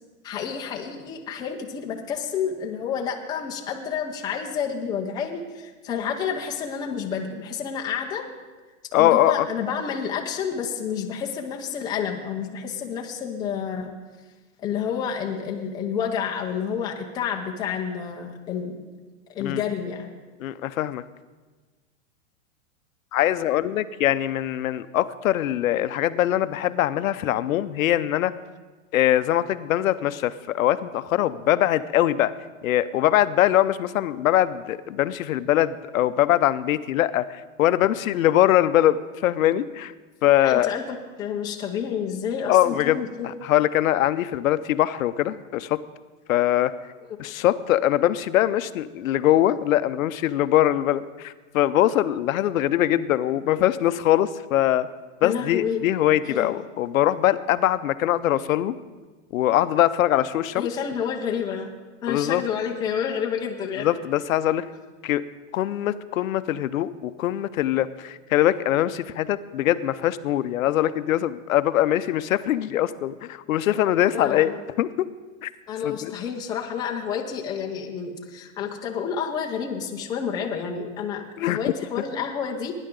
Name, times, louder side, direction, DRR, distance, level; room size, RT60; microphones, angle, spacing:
voice 1, 0.2-8.3 9.0-13.9 14.6-18.8 19.3-20.1 40.4-43.3 55.2-55.8 56.2-56.5 60.5-61.7 62.0-63.9 74.1-74.6 75.7-82.7, left 7 dB, 10° left, 1 dB, 0.5 m, -29 dB
voice 2, 8.9-9.5 19.4-19.6 20.4-21.0 23.1-28.3 28.9-32.3 32.6-39.9 40.2-40.7 42.5-43.0 43.4-45.8 46.3-46.7 47.2-54.9 55.2-58.8 59.3-60.7 62.1-62.4 63.8-64.7 65.0-65.2 65.5-74.5 74.8-75.1 75.4-75.5 75.8-76.1 81.4-81.6, left 13 dB, 80° left, 14 dB, 0.6 m, -22 dB
18.0 x 9.9 x 3.8 m, 1.3 s
supercardioid pair, 155°, 40 cm